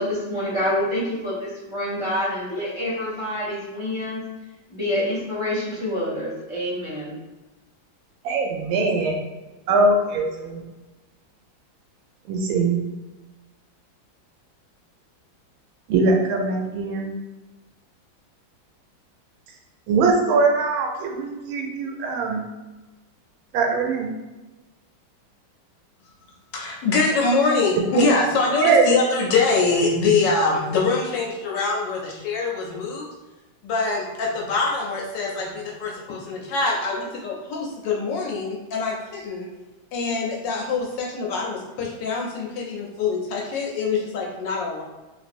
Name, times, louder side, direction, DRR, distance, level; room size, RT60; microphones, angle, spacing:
voice 1, 0.0-4.2 4.7-7.1, left 1 dB, 20° left, -11 dB, 0.9 m, -27 dB
voice 2, 8.2-9.2 9.7-10.6 12.3-12.8 15.9-17.1 19.9-22.5 23.5-24.1 28.6-28.8, right 3 dB, 90° right, 2 dB, 1.4 m, -21 dB
voice 3, 26.5-33.1 33.6-39.5 39.9-44.8, left 3 dB, 75° left, -1 dB, 1.1 m, -24 dB
3.1 x 2.9 x 2.5 m, 1.1 s
omnidirectional pair, 2.2 m